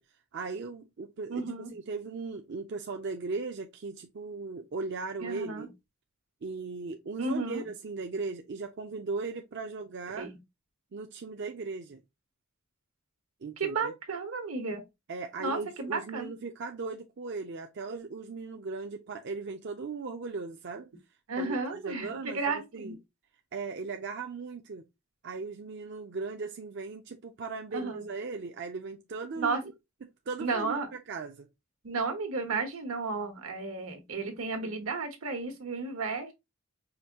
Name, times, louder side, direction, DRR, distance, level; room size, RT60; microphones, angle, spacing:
voice 1, 0.3-1.4 1.7-5.7 6.4-10.3 10.9-12.0 13.4-13.9 15.1-20.9 21.4-23.0 23.5-24.8 25.2-29.6 30.3-30.8 31.1-31.5, right 4 dB, 55° right, 0.5 m, -38 dB
voice 2, 1.3-1.7 5.2-5.7 7.2-7.7 10.2-10.3 13.6-14.8 15.4-16.3 21.3-23.0 27.7-28.1 29.4-29.6 30.4-30.9 31.8-36.3, right 3 dB, 80° right, 1.2 m, -33 dB
5.0 x 2.6 x 2.8 m
head